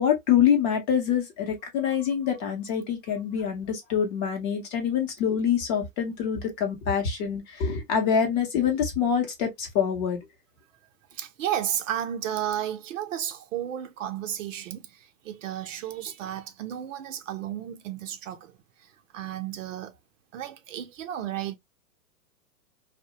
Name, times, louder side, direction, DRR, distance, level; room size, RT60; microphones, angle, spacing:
voice 1, 0.0-10.2, left 8 dB, 30° left, 0.6 m, -25 dB
voice 2, 11.1-19.9 20.3-21.6, right 11 dB, 55° right, 0.6 m, -33 dB
2.3 x 2.0 x 2.7 m
hypercardioid pair, 145°, 46 cm